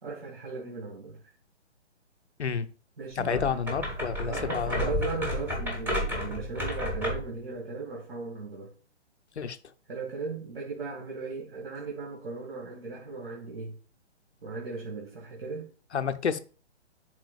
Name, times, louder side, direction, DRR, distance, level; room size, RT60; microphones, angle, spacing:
voice 1, 0.0-1.2 3.0-3.4 4.3-8.7 9.9-13.7 14.4-15.7, right 4 dB, 55° right, 1.8 m, -37 dB
voice 2, 3.2-4.9 9.4-9.6 15.9-16.4, left 6 dB, 70° left, 0.7 m, -30 dB
sound 1, 3.2-7.3, left 1 dB, 5° right, 1.1 m, -32 dB
10.5 x 3.9 x 2.3 m
figure-of-eight pair, 130°, 35 cm